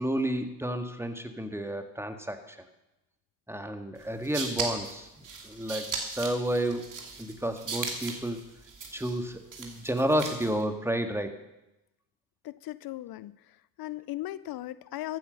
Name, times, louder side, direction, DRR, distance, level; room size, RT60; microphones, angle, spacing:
voice 1, 0.0-2.6 3.5-5.1 5.4-6.9 7.2-8.4 8.9-11.3, right 1 dB, 5° right, 7 dB, 1.8 m, -31 dB
sound 1, 4.0-10.6, right 4 dB, 55° right, 2.8 m, -38 dB
voice 2, 12.4-15.2, left 15 dB, 75° left, 17 dB, 0.5 m, -38 dB
14.0 x 9.2 x 6.6 m, 0.93 s
supercardioid pair, 60°, 37 cm